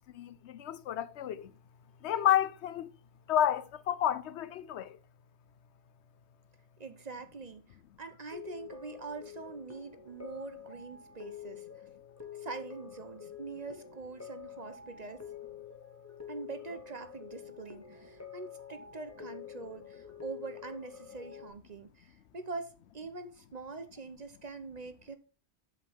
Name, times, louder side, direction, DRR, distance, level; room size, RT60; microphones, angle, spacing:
voice 1, 0.1-1.5 2.0-2.9 3.3-5.0, left 11 dB, 85° left, 0.9 m, -30 dB
voice 2, 6.8-11.7 12.3-15.3 16.3-25.2, right 4 dB, 40° right, 1.0 m, -44 dB
sound 1, 8.3-21.5, left 8 dB, 15° left, 1.4 m, -48 dB
8.0 x 7.7 x 3.5 m
omnidirectional pair, 1.1 m